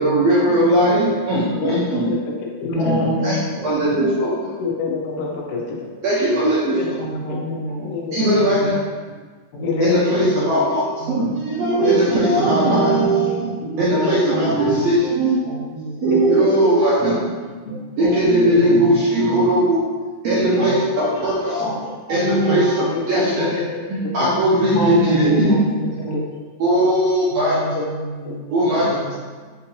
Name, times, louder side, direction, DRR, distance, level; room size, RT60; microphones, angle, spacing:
voice 1, 0.0-2.1 2.9-3.3 3.6-4.3 6.0-7.0 8.1-8.8 9.8-13.5 13.8-15.4 16.0-17.3 18.0-19.8 20.2-21.7 22.1-23.6 23.9-25.7 26.6-27.6 28.5-29.0, right 1 dB, 70° right, -9 dB, 1.6 m, -18 dB
voice 2, 1.5-2.2 2.6-2.9 4.6-5.9 6.8-6.9 7.3-7.4 7.8-8.3 9.6-10.2 11.8-12.0 13.9-14.3 16.0-16.5 18.5-18.7 20.3-20.7 22.9-23.0 23.4-23.5 24.2-24.3 25.2-25.3 26.1-26.2 27.7-27.9 28.3-28.4, left 5 dB, 90° left, -1 dB, 2.4 m, -25 dB
voice 3, 2.6-3.4 7.0-7.9 8.2-8.7 9.5-10.5 11.0-11.3 13.6-14.9 15.4-16.0 17.7-18.1 18.5-19.0 20.6-20.8 21.6-21.7 22.5-22.9 24.7-26.2 27.4-28.4 28.8-29.1, equal, 65° left, -7 dB, 1.8 m, -27 dB
6.6 x 2.7 x 2.8 m, 1.4 s
omnidirectional pair, 3.8 m